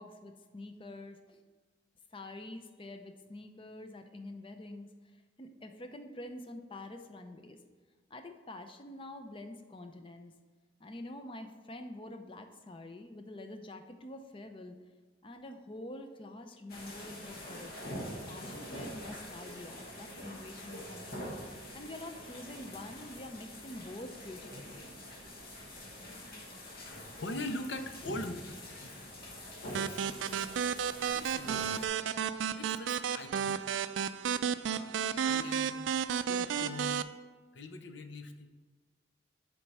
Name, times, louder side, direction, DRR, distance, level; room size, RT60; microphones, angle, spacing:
voice 1, 0.0-1.4 2.1-4.9 5.4-7.6 8.1-10.3 10.8-14.8 15.2-17.7 18.3-21.3 21.7-24.9, left 1 dB, 30° left, 7 dB, 0.6 m, -46 dB
sound 1, 16.7-31.9, equal, 50° left, 1.3 m, -45 dB
voice 2, 26.9-28.9 29.8-30.8 31.0-31.8 32.5-33.7 35.0-35.9 36.3-37.1 37.5-38.5, left 2 dB, 70° left, 8 dB, 0.7 m, -42 dB
sound 2, 29.7-37.0, right 7 dB, 75° right, 0.3 m, -33 dB
7.4 x 4.6 x 5.4 m, 1.4 s
head